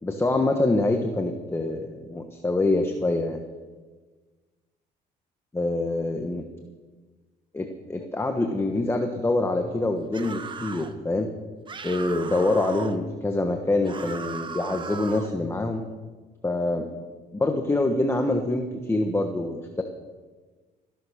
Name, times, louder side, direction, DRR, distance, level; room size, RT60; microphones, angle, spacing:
voice 1, 0.0-3.4 5.5-6.4 7.5-11.3 11.8-15.8 16.4-16.9 17.3-19.8, left 2 dB, 15° left, 5 dB, 1.3 m, -25 dB
sound 1, 10.1-10.9 11.7-13.0 13.8-15.4, right 5 dB, 30° right, 1.1 m, -37 dB
14.5 x 12.0 x 6.5 m, 1.3 s
cardioid pair, 110°, 17 cm